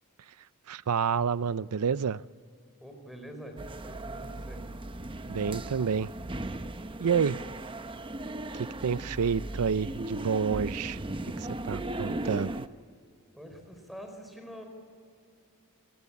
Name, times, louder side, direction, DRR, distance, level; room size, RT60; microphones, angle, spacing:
voice 1, 0.7-2.2 5.3-6.1 7.0-7.4 8.6-11.0 11.4-12.7, right 6 dB, 90° right, 0.5 m, -29 dB
voice 2, 2.8-3.6 3.8-4.6 13.3-14.6, equal, ahead, 4.6 m, -45 dB
sound 1, 3.6-12.7, right 1 dB, 25° right, 0.8 m, -37 dB
29.0 x 18.0 x 8.6 m
head